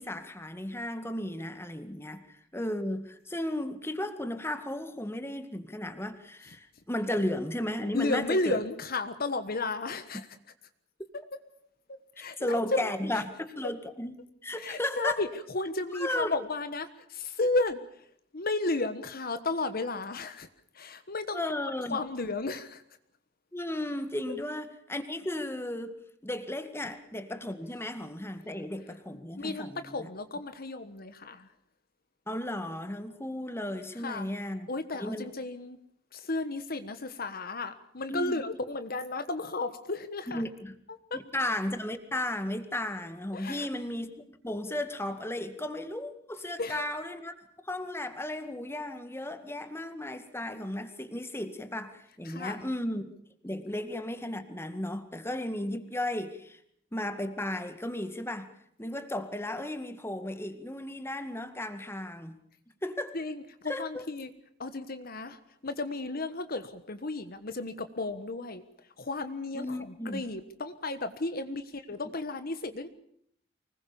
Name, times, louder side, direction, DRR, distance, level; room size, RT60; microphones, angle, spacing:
voice 1, 0.0-2.2 2.5-8.6 12.4-14.1 14.4-15.2 15.9-16.3 21.3-22.0 23.5-26.0 26.2-30.1 32.3-34.7 35.0-35.3 38.1-38.4 40.3-40.8 41.1-47.3 47.6-53.0 53.4-56.6 56.9-58.5 58.8-62.4 62.8-63.1 63.7-64.1 69.5-70.2 71.5-71.6, left 1 dB, 15° left, 8 dB, 2.0 m, -35 dB
voice 2, 7.9-10.3 12.2-13.2 14.6-17.8 18.3-20.5 20.7-21.4 21.9-22.8 29.4-31.5 34.0-34.3 34.7-35.8 36.1-40.4 41.1-41.2 43.3-43.7 46.6-46.8 52.2-52.6 63.1-64.3 64.6-68.6 69.0-72.9, left 2 dB, 50° left, 10 dB, 1.4 m, -33 dB
25.0 x 20.5 x 7.0 m, 0.68 s
head